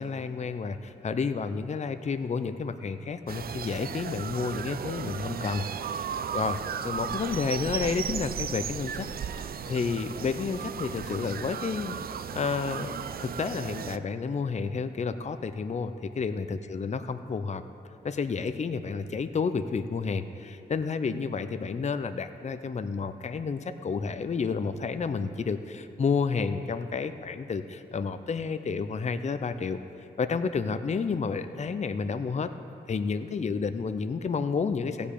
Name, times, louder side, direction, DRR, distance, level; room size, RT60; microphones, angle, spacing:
voice 1, 0.0-6.6 6.8-9.1 9.4-12.0 12.3-12.9 13.2-17.6 18.0-29.8 30.2-32.5 32.9-35.1, left 5 dB, 40° left, 10 dB, 0.6 m, -30 dB
sound 1, 3.3-14.0, right 8 dB, 60° right, 0.4 m, -35 dB
15.5 x 5.2 x 8.5 m, 2.7 s
cardioid pair, 60°, 17 cm